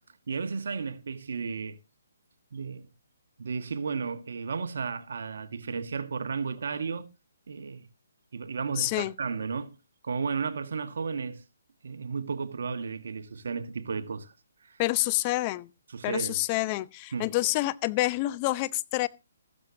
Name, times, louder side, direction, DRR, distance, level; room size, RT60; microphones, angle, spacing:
voice 1, 0.3-1.8 2.5-2.9 3.4-7.1 7.5-7.9 8.3-9.7 10.0-11.4 11.8-14.3 14.6-14.8 15.9-16.4 17.1-17.3, right 5 dB, 70° right, 1.6 m, -33 dB
voice 2, 8.8-9.1 14.8-15.7 16.0-19.1, left 19 dB, 30° left, 0.7 m, -28 dB
14.5 x 13.5 x 2.8 m
hypercardioid pair, 150°, 0 cm